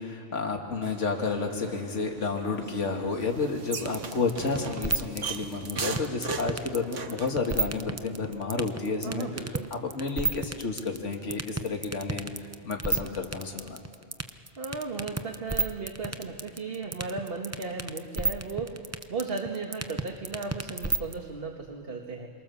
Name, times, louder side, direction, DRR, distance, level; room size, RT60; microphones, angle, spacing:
voice 1, 0.0-9.3 9.7-13.8, left 4 dB, 70° left, 2 dB, 2.3 m, -31 dB
sound 1, 0.8-7.4, right 5 dB, 75° right, 1.7 m, -39 dB
sound 2, 3.9-21.1, right 3 dB, 15° right, 0.7 m, -29 dB
voice 2, 9.0-9.7 14.6-22.3, right 4 dB, 50° right, 2 dB, 1.9 m, -36 dB
28.0 x 24.0 x 7.1 m, 2.3 s
omnidirectional pair, 1.3 m